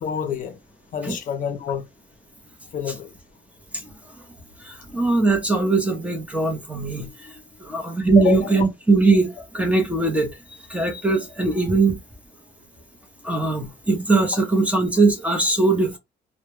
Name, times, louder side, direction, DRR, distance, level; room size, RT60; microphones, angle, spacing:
voice 1, 0.0-0.6 0.9-1.8 2.7-3.1 8.2-8.6, left 7 dB, 50° left, 0.6 m, -26 dB
voice 2, 4.6-7.3 7.6-10.3 10.7-12.0 13.2-16.0, right 3 dB, 10° right, 0.6 m, -20 dB
2.1 x 2.1 x 3.0 m
cardioid pair, 110°, 17 cm